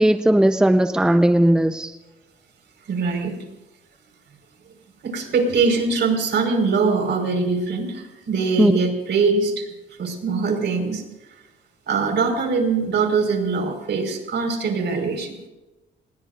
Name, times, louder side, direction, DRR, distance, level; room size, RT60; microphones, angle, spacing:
voice 1, 0.0-1.9 8.6-8.7, right 1 dB, 5° right, 8 dB, 0.8 m, -17 dB
voice 2, 2.9-3.3 5.0-9.7 10.0-11.0 11.9-15.3, right 4 dB, 60° right, 4 dB, 5.1 m, -22 dB
27.0 x 20.5 x 2.6 m, 1.0 s
cardioid pair, 90°, 20 cm